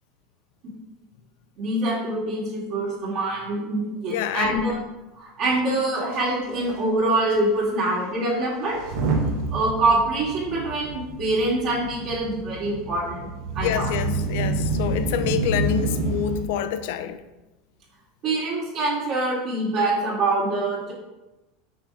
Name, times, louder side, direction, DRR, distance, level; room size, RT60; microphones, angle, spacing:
voice 1, 1.6-4.8 5.2-8.8 9.5-13.3 13.5-13.9 18.2-20.9, right 2 dB, 45° right, 2.2 m, -25 dB
voice 2, 4.1-4.7 13.6-17.2, left 9 dB, 70° left, 0.5 m, -27 dB
Motor vehicle (road) / Engine starting / Accelerating revving vroom, 6.1-6.2 6.4-6.7 7.3-7.4 8.7-16.4, right 2 dB, 70° right, 1.3 m, -28 dB
6.1 x 3.7 x 4.8 m
supercardioid pair, 155°, 0 cm